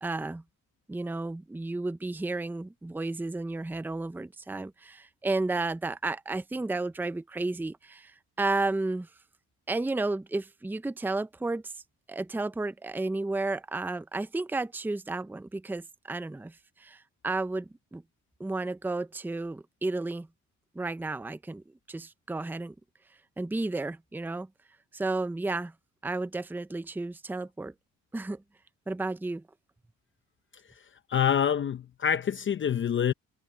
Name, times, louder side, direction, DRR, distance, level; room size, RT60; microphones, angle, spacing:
voice 1, 0.0-0.4 0.9-9.1 9.7-11.7 12.1-16.5 16.8-18.0 18.4-20.3 20.7-22.7 23.4-24.5 24.9-25.7 26.0-27.7 28.1-28.4 28.9-29.4, right 2 dB, 5° right, 0.6 m, -32 dB
voice 2, 30.7-33.1, left 8 dB, 40° left, 0.7 m, -27 dB
cardioid pair, 90°, 30 cm